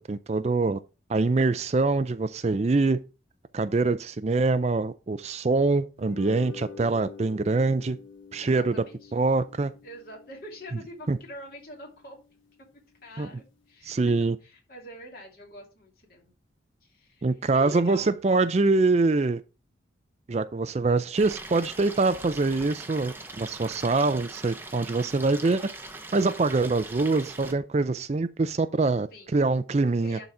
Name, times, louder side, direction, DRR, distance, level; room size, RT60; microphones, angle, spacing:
voice 1, 0.1-0.8 1.1-3.0 3.5-8.0 8.3-8.8 9.1-9.7 11.1-11.2 13.2-13.3 13.8-14.4 17.2-19.4 20.3-25.6 26.1-30.2, right 3 dB, 35° right, 0.4 m, -24 dB
sound 1, 6.0-12.5, left 5 dB, 90° left, 1.4 m, -47 dB
voice 2, 8.4-9.1 9.8-12.2 13.0-13.9 14.2-16.3 16.8-18.1 29.1-29.3 30.0-30.2, left 1 dB, 50° left, 2.9 m, -44 dB
Stream, 21.2-27.5, right 2 dB, 10° right, 0.8 m, -41 dB
11.0 x 4.0 x 4.7 m
head